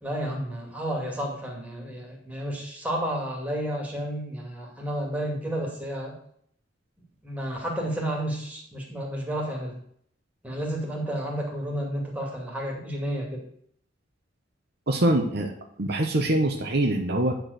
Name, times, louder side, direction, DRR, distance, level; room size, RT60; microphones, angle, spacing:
voice 1, 0.0-6.1 7.2-9.8 10.4-13.4, right 1 dB, 10° right, -2 dB, 2.4 m, -31 dB
voice 2, 14.9-15.5 15.8-17.4, right 1 dB, 55° right, 3 dB, 1.1 m, -24 dB
9.8 x 4.6 x 6.7 m, 0.65 s
head